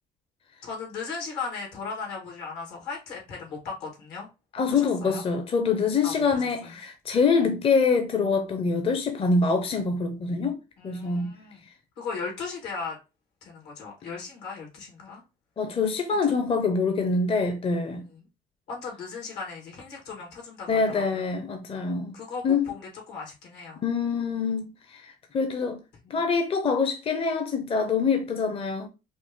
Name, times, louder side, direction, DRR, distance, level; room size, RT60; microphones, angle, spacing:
voice 1, 0.6-4.3 4.7-5.2 6.0-6.8 10.8-11.6 12.0-13.0 13.4-15.2 16.2-16.3 18.1-18.2 18.7-21.2 22.1-23.8 26.0-26.2, left 5 dB, 80° left, 2.2 m, -37 dB
voice 2, 4.5-11.3 15.6-18.0 20.7-22.1 22.4-22.7 23.8-25.8 26.1-28.9, left 4 dB, 35° left, 0.6 m, -25 dB
5.1 x 2.0 x 3.6 m
cardioid pair, 110°, 17 cm